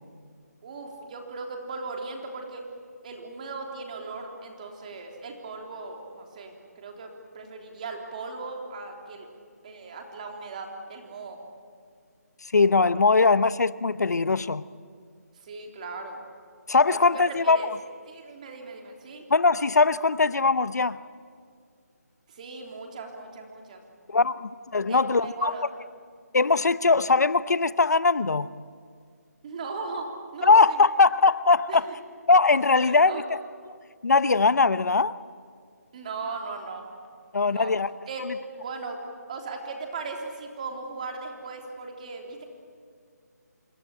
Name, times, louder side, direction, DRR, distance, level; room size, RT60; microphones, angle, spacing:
voice 1, 0.6-2.6 3.0-9.3 9.6-11.4 15.4-16.2 16.8-17.7 18.1-19.2 22.3-23.8 24.9-25.6 29.4-30.9 31.7-31.8 32.7-33.2 35.9-36.9 37.5-37.7 38.1-38.3 38.6-39.0 39.3-42.4, right 4 dB, 25° right, 2 dB, 3.5 m, -38 dB
voice 2, 12.5-14.6 16.7-17.7 19.3-21.0 24.1-25.5 26.3-28.5 30.4-31.9 32.3-33.4 34.0-35.2 37.3-37.9 38.3-38.4, left 4 dB, 75° left, 16 dB, 0.9 m, -21 dB
27.5 x 23.0 x 8.9 m, 2.1 s
figure-of-eight pair, 170°, 9 cm